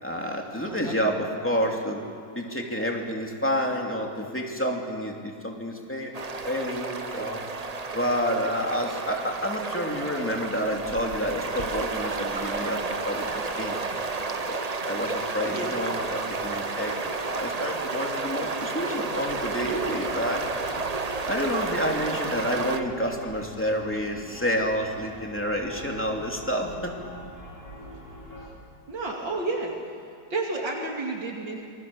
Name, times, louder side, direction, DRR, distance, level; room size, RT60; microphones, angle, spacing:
voice 1, 0.0-2.0 2.3-6.1 6.5-7.4 7.9-13.8 14.5-16.9 17.2-20.5 21.3-26.9, equal, 5° left, 0 dB, 2.7 m, -29 dB
sound 1, 6.1-22.8, right 4 dB, 30° right, 0.7 m, -31 dB
sound 2, 19.1-28.5, left 1 dB, 55° left, 5.0 m, -44 dB
voice 2, 22.0-22.3 28.9-29.9 30.3-31.6, right 3 dB, 85° right, -1 dB, 3.3 m, -31 dB
27.5 x 21.5 x 7.1 m, 2.5 s
omnidirectional pair, 2.0 m